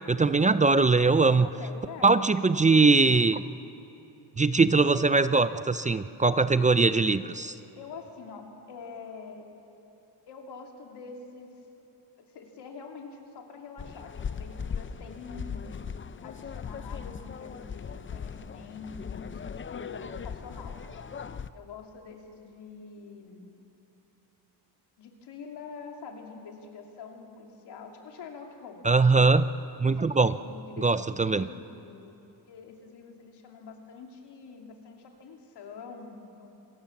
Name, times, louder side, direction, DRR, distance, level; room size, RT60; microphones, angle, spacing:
voice 1, 0.1-1.5 2.0-3.4 4.4-7.5 28.8-29.5 29.8-30.3 30.8-31.5, right 3 dB, 20° right, 13 dB, 0.4 m, -21 dB
voice 2, 1.3-2.2 7.8-9.5 10.3-11.5 12.2-20.8 21.5-23.6 25.0-28.9 29.8-32.2 32.5-36.5, left 5 dB, 85° left, 2 dB, 2.9 m, -45 dB
sound 1, 13.8-21.5, left 6 dB, 30° left, 0.6 m, -38 dB
26.5 x 17.5 x 7.2 m, 2.9 s
cardioid pair, 120°, 39 cm